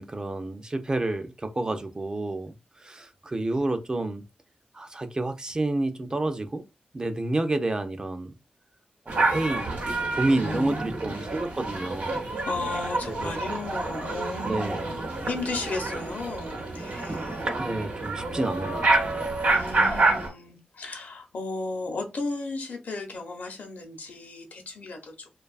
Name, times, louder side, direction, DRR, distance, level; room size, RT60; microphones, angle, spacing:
voice 1, 0.0-2.5 2.8-4.2 4.7-6.6 6.9-8.3 9.1-9.8 10.1-12.3 13.1-13.4 14.4-14.9 17.5-19.3, right 2 dB, 25° right, 0.4 m, -29 dB
sound 1, 9.1-20.3, right 3 dB, 90° right, 0.8 m, -28 dB
voice 2, 10.3-10.9 12.1-17.5 19.5-25.4, left 3 dB, 75° left, 0.6 m, -35 dB
2.6 x 2.3 x 2.3 m
wide cardioid pair, 90°, 3 cm